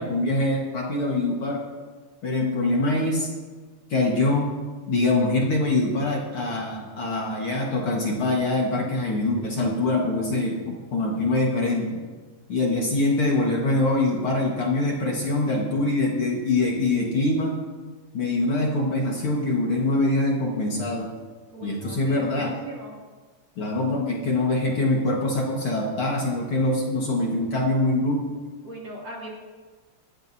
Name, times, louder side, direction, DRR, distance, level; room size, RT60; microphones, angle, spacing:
voice 1, 0.0-1.6 2.2-3.3 3.9-4.5 4.9-12.0 12.5-17.6 18.1-21.1 21.6-22.6 23.6-28.3, left 2 dB, 50° left, -2 dB, 2.3 m, -24 dB
voice 2, 21.5-23.0 28.6-29.3, equal, 40° right, -4 dB, 3.2 m, -39 dB
19.0 x 14.0 x 2.8 m, 1.4 s
omnidirectional pair, 3.3 m